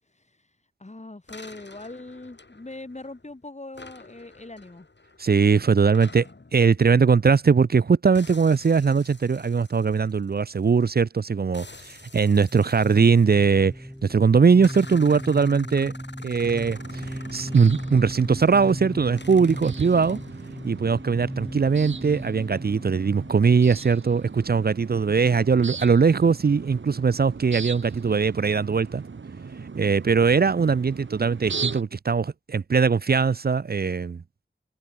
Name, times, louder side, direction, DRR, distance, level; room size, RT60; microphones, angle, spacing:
voice 1, 0.8-4.9 19.9-20.2 30.5-30.6, left 2 dB, 40° left, 2.1 m, -41 dB
sound 1, 1.3-3.3 3.7-7.8 8.1-10.9 11.5-14.0 14.6-18.8 19.2-20.6, left 3 dB, 70° left, 5.7 m, -48 dB
voice 2, 5.2-6.3 6.5-13.7 14.0-15.9 16.2-20.2 20.6-29.0 29.7-34.2, right 5 dB, 55° right, 0.5 m, -20 dB
sound 2, 12.4-24.6, equal, ahead, 4.0 m, -38 dB
sound 3, 16.4-31.8, right 5 dB, 90° right, 1.0 m, -38 dB
wide cardioid pair, 50°, 19 cm